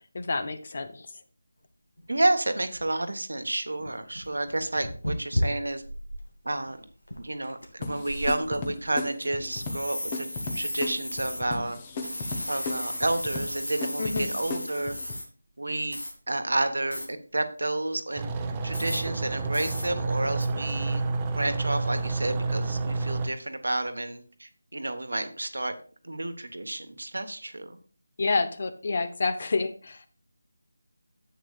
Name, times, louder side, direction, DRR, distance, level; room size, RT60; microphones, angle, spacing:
voice 1, 0.1-1.1 14.0-14.3 28.2-30.0, left 3 dB, 45° left, 11 dB, 0.9 m, -28 dB
sound 1, 2.0-2.1 2.7-2.9 3.5-3.6 3.8-6.2 6.6-6.7 7.1-7.6 8.1-8.9 9.5-11.4 12.0-15.2 15.9-16.1 16.9-17.1 18.7-19.0 19.5-19.8 20.4-20.5, left 1 dB, 90° left, 2.1 m, -34 dB
voice 2, 2.1-5.8 6.4-6.8 7.2-10.3 10.5-11.8 12.5-15.0 15.6-16.0 16.3-18.2 18.6-21.0 21.3-25.7 26.0-27.8, right 2 dB, 75° right, 8 dB, 1.2 m, -30 dB
sound 2, 7.8-15.2, left 3 dB, 25° left, 1.1 m, -36 dB
sound 3, 18.2-23.3, right 3 dB, 15° right, 0.8 m, -29 dB
10.5 x 8.2 x 2.4 m, 0.40 s
figure-of-eight pair, 160°, 0 cm